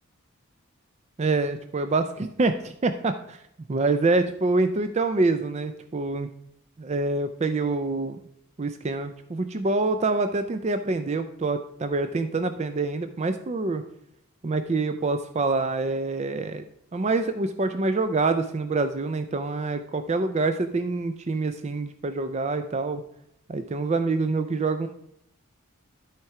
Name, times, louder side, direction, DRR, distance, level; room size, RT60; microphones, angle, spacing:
voice 1, 1.2-3.4 3.7-6.3 6.8-8.2 8.6-13.8 14.4-16.6 16.9-23.0 23.5-24.9, right 3 dB, 30° right, 9 dB, 0.4 m, -26 dB
12.5 x 4.5 x 4.7 m, 0.74 s
head